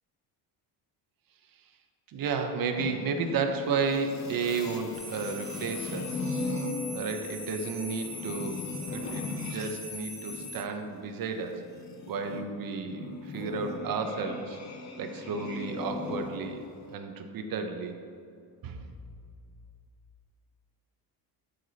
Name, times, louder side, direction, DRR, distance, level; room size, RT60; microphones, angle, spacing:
voice 1, 2.1-6.2 6.9-8.6 8.9-11.6 12.1-14.6 15.0-16.6 16.9-18.0 18.6-19.0, right 5 dB, 55° right, 6 dB, 1.1 m, -32 dB
sound 1, 2.8-9.8 10.1-16.9, left 3 dB, 40° left, 1.1 m, -39 dB
sound 2, 4.9-10.6, left 2 dB, 25° left, 2.3 m, -42 dB
12.0 x 5.1 x 4.2 m, 2.4 s
cardioid pair, 130°, 41 cm